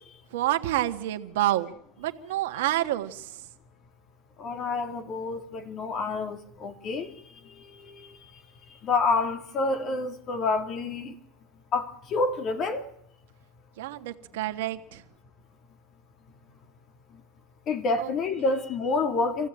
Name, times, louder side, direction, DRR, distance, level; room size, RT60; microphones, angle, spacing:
voice 1, 0.3-1.7 2.0-3.4 13.8-15.0 18.0-18.1, right 15 dB, 85° right, 1.7 m, -28 dB
voice 2, 4.4-7.1 7.4-8.2 8.8-11.1 11.7-12.8 17.1-17.2 17.7-19.5, left 3 dB, 45° left, 3.0 m, -28 dB
26.0 x 15.5 x 9.0 m
supercardioid pair, 110°, 0 cm